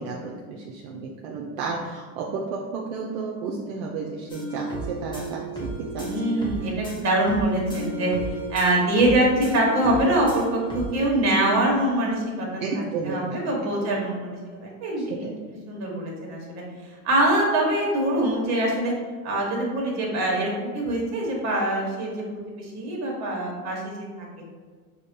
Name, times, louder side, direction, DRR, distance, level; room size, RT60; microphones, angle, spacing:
voice 1, 0.0-6.0 12.6-13.2 15.0-15.3, right 4 dB, 65° right, -1 dB, 0.6 m, -32 dB
sound 1, 4.3-11.0, right 2 dB, 10° left, 0.6 m, -33 dB
voice 2, 6.0-8.1 8.5-15.3 15.7-16.6 17.0-18.9 19.2-22.2 22.6-24.4, right 1 dB, 35° right, -2 dB, 1.2 m, -24 dB
4.9 x 2.3 x 2.7 m, 1.5 s
hypercardioid pair, 105°, 44 cm